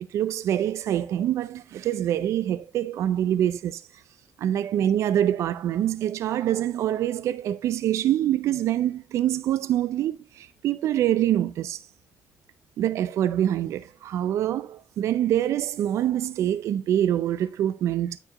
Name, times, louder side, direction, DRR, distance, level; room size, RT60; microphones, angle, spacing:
voice 1, 0.1-3.8 4.4-11.8 12.8-18.2, right 11 dB, 70° right, 0.5 m, -25 dB
9.0 x 4.6 x 3.7 m
cardioid pair, 95°, 5 cm